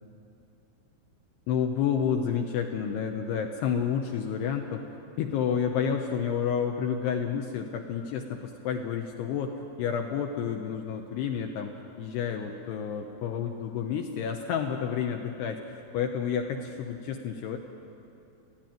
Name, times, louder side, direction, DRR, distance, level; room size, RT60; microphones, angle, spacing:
voice 1, 1.5-4.8 5.2-11.7 12.0-17.6, left 7 dB, 80° left, 4 dB, 2.4 m, -30 dB
29.5 x 10.5 x 9.1 m, 2.7 s
omnidirectional pair, 5.8 m